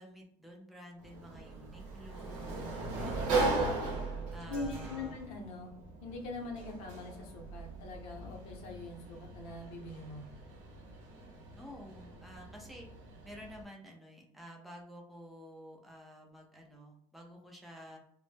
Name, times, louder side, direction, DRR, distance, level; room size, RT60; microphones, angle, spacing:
voice 1, 0.0-3.7 4.3-5.2 11.6-12.9 13.2-18.0, equal, ahead, 0 dB, 0.3 m, -51 dB
Sliding door, 1.0-13.6, right 3 dB, 80° right, 0.7 m, -38 dB
voice 2, 3.0-3.5 4.5-5.7 6.0-10.2, left 2 dB, 60° left, 2 dB, 0.6 m, -43 dB
2.0 x 2.0 x 3.1 m, 0.67 s
cardioid pair, 180°, 11 cm